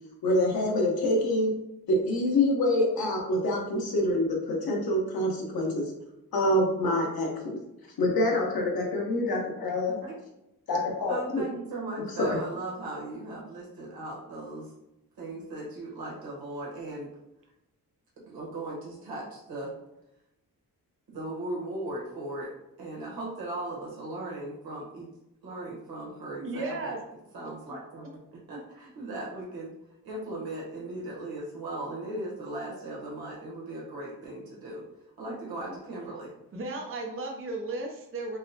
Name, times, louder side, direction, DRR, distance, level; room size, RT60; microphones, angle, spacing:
voice 1, 0.2-1.5 1.9-5.9 6.3-7.6 8.0-10.0 10.7-11.4 12.2-12.4, left 1 dB, 80° left, -1 dB, 1.2 m, -26 dB
voice 2, 9.9-10.2 11.1-14.7 15.2-17.1 18.3-19.7 21.1-25.1 25.4-27.0 27.3-28.1 28.5-29.7 30.0-34.8 35.2-36.3, right 2 dB, 90° right, -4 dB, 1.2 m, -38 dB
voice 3, 26.4-27.0 27.4-27.5 36.5-38.4, right 2 dB, 35° right, 1 dB, 0.6 m, -34 dB
6.1 x 2.1 x 2.8 m, 0.89 s
wide cardioid pair, 155°, 36 cm